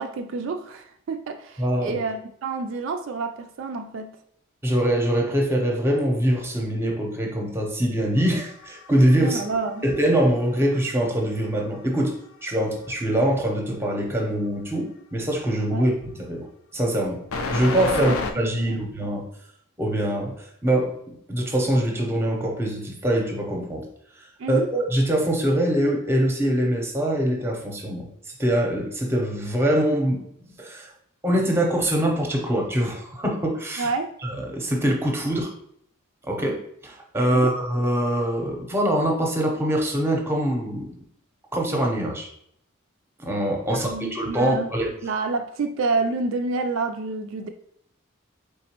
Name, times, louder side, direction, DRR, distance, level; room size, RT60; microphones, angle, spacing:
voice 1, 0.0-4.2 9.2-9.9 15.7-15.9 17.9-18.9 24.4-24.7 33.8-34.1 37.3-37.5 43.7-44.7 45.0-47.5, right 4 dB, 65° right, 5 dB, 0.3 m, -29 dB
voice 2, 1.6-2.0 4.6-9.4 9.8-12.1 12.4-15.9 16.3-16.5 16.7-17.2 17.5-19.3 19.8-23.8 24.5-28.1 28.4-30.2 30.6-30.9 31.2-33.9 34.2-35.5 36.3-40.9 41.5-42.3 43.2-44.9, right 1 dB, 10° right, 0 dB, 0.7 m, -23 dB
sound 1, 8.2-10.9 11.2-12.3 17.3-18.3, left 3 dB, 90° left, 0.5 m, -30 dB
4.1 x 3.5 x 2.9 m, 0.69 s
head